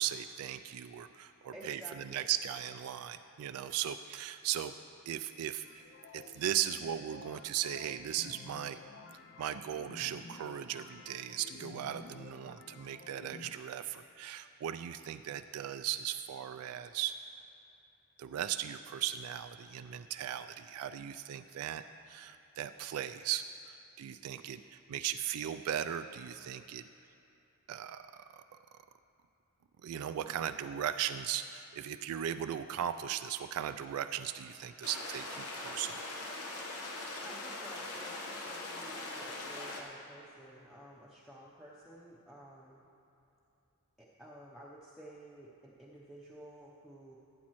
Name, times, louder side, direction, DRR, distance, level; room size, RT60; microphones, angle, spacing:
voice 1, 0.0-4.7 5.1-5.8 6.1-8.8 9.4-17.1 18.2-26.8 27.7-28.4 29.8-36.0, right 10 dB, 70° right, 11 dB, 0.3 m, -37 dB
voice 2, 1.5-2.3 37.2-42.8 44.0-47.2, right 1 dB, ahead, -7 dB, 0.7 m, -52 dB
sound 1, 5.7-13.5, left 4 dB, 50° left, 0.4 m, -52 dB
sound 2, 34.8-39.8, left 2 dB, 90° left, 1.2 m, -41 dB
15.5 x 8.4 x 3.0 m, 2.8 s
head